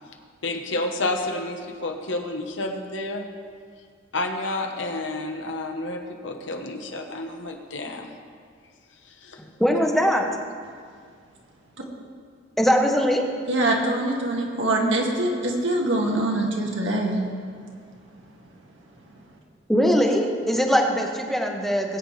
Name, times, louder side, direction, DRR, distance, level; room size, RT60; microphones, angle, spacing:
voice 1, 0.4-3.2 4.1-8.1 9.1-9.4, left 2 dB, 80° left, 3 dB, 1.3 m, -30 dB
voice 2, 9.6-10.3 12.6-13.2 19.7-22.0, equal, ahead, 2 dB, 1.1 m, -21 dB
voice 3, 13.5-17.2, right 1 dB, 80° right, -1 dB, 1.9 m, -24 dB
20.5 x 8.6 x 3.3 m, 2.1 s
head